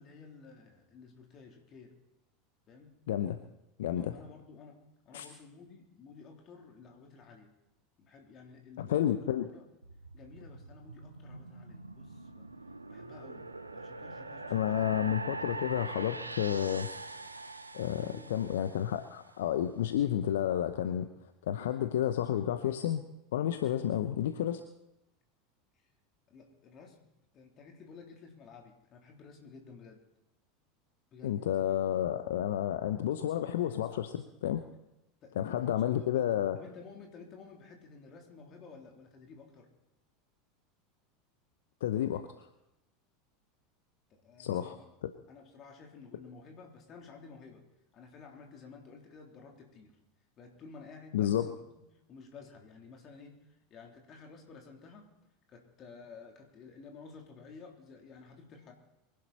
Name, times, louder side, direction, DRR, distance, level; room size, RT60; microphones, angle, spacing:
voice 1, 0.0-1.9 2.7-2.9 3.9-4.8 5.0-7.5 8.0-9.2 9.5-9.7 10.1-12.5 12.9-14.9 15.4-15.8 18.0-18.5 26.3-27.0 27.3-30.1 31.1-31.4 31.7-31.8 35.2-36.2 36.5-39.7 44.1-44.8 45.3-47.6 47.9-50.0 50.4-51.8 52.1-55.1 55.5-58.7, left 4 dB, 35° left, 2 dB, 3.5 m, -53 dB
voice 2, 3.1-3.4 3.8-4.1 5.1-5.3 8.8-9.5 14.5-16.9 17.7-21.1 21.4-23.0 23.3-24.6 31.2-34.6 35.4-36.6 41.8-42.3 44.4-44.8 45.0-45.1 51.1-51.5, left 11 dB, 65° left, 9 dB, 0.8 m, -31 dB
sound 1, 9.8-19.2, right 2 dB, 85° right, 0.8 m, -43 dB
23.5 x 11.5 x 4.3 m, 0.90 s
figure-of-eight pair, 80°, 0 cm